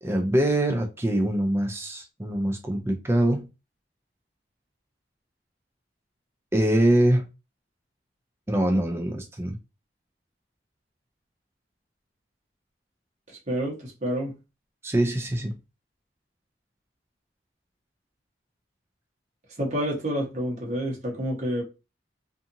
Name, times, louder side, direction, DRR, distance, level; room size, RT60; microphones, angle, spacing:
voice 1, 0.0-3.5 6.5-7.3 8.5-9.6 14.8-15.6, right 1 dB, 15° right, 0.3 m, -24 dB
voice 2, 13.3-14.3 19.6-21.6, equal, 40° right, 1.0 m, -29 dB
2.7 x 2.5 x 2.5 m
head